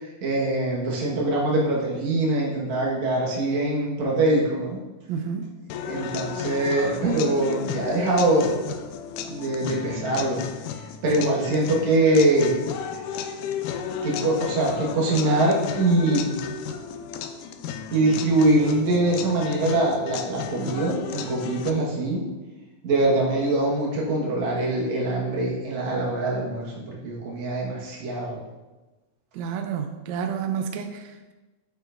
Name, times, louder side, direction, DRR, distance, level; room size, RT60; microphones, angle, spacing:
voice 1, 0.0-4.8 5.8-8.5 9.3-10.4 11.0-12.9 14.0-16.4 17.9-22.2 22.8-28.4, right 2 dB, 60° right, -3 dB, 2.6 m, -23 dB
voice 2, 5.1-5.5 11.2-11.3 29.3-31.3, right 7 dB, 85° right, 6 dB, 1.6 m, -30 dB
sound 1, 5.7-21.7, left 7 dB, 80° left, 2.0 m, -34 dB
9.2 x 6.7 x 2.5 m, 1.1 s
omnidirectional pair, 3.8 m